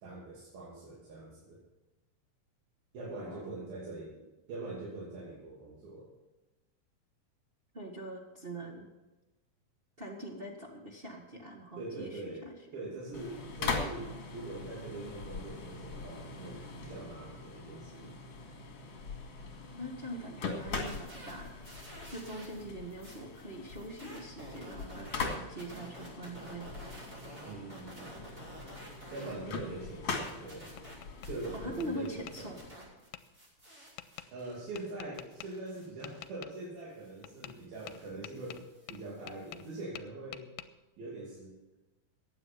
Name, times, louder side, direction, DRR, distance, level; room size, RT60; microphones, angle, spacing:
voice 1, 0.0-1.6 2.9-6.1 11.8-18.1 27.4-28.2 29.1-30.7 31.3-32.6 34.3-40.5 41.0-41.7, right 2 dB, 85° right, -5 dB, 4.6 m, -43 dB
voice 2, 7.7-8.8 10.0-12.5 19.4-21.5 22.1-26.7 29.2-29.5 31.5-32.6, right 1 dB, 55° right, -1 dB, 0.6 m, -43 dB
sound 1, 13.1-32.7, left 4 dB, 45° left, 2.8 m, -42 dB
sound 2, 20.6-22.6 22.9-29.3 29.7-32.0 32.3-39.8, right 1 dB, 25° right, 6.1 m, -52 dB
Tap, 30.3-31.3 31.8-32.4 33.1-33.2 34.0-34.3 34.8-35.5 36.0-36.5 37.2-37.6 37.9-39.7 40.0-40.7, left 14 dB, 85° left, 2.3 m, -47 dB
15.0 x 9.7 x 5.9 m, 1.1 s
omnidirectional pair, 4.1 m